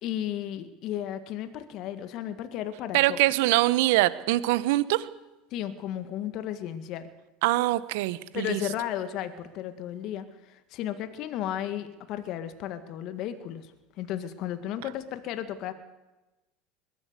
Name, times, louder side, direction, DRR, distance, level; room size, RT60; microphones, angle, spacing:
voice 1, 0.0-3.2 5.5-7.1 8.3-13.7 14.0-15.7, left 11 dB, 55° left, 10 dB, 1.9 m, -34 dB
voice 2, 2.9-5.1 7.4-8.6, right 17 dB, 70° right, 16 dB, 1.1 m, -23 dB
22.0 x 16.0 x 8.3 m, 1.1 s
hypercardioid pair, 85°, 0 cm